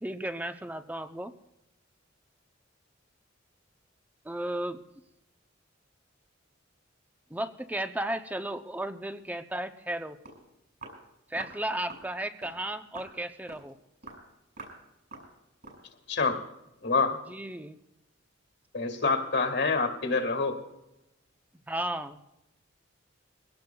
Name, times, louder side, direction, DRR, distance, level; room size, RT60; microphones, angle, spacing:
voice 1, 0.0-1.3 4.2-4.8 7.3-10.2 11.3-13.8 17.3-17.8 21.7-22.2, right 1 dB, 10° right, 8 dB, 0.6 m, -34 dB
Walk footsteps, 10.3-10.4 10.8-11.0 11.4-11.6 11.9-12.1 12.4-12.6 13.0-13.2 13.5-13.7 14.0-14.3 14.6-14.8 15.1-15.3 15.6-15.9 16.2-16.4, right 3 dB, 55° right, 5.8 m, -46 dB
voice 2, 16.1-16.4 16.8-17.2 18.7-20.6, left 4 dB, 60° left, 5 dB, 2.1 m, -26 dB
23.0 x 17.5 x 2.3 m, 0.91 s
head